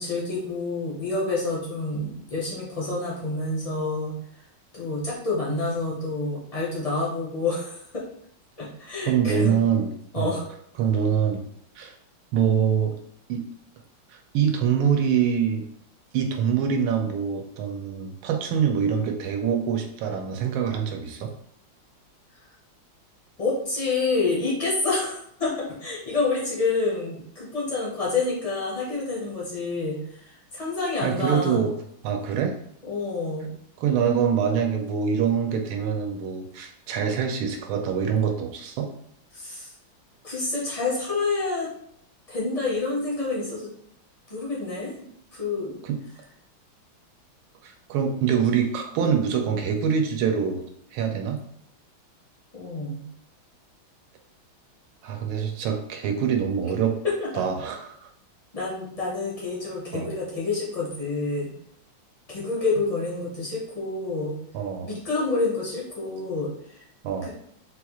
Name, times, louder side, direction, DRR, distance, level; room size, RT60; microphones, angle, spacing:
voice 1, 0.0-4.2 4.7-8.0 8.6-9.5 10.1-10.4 23.4-31.6 32.9-33.5 39.3-39.7 40.2-41.7 42.3-43.7 44.3-45.8 52.5-53.0 57.0-57.4 58.5-61.5 62.3-64.4 64.8-66.8 67.2-67.3, left 3 dB, 65° left, -6 dB, 0.3 m, -28 dB
voice 2, 9.1-10.4 10.8-11.4 11.8-11.9 12.3-13.0 13.3-13.4 14.1-15.6 16.1-21.3 31.0-31.7 32.0-32.6 33.8-38.9 45.8-46.0 47.6-50.6 50.9-51.4 55.0-57.0 57.3-58.1 59.9-60.1 64.5-64.9 67.0-67.3, right 7 dB, 85° right, 4 dB, 1.4 m, -25 dB
4.1 x 2.3 x 2.9 m, 0.68 s
omnidirectional pair, 2.2 m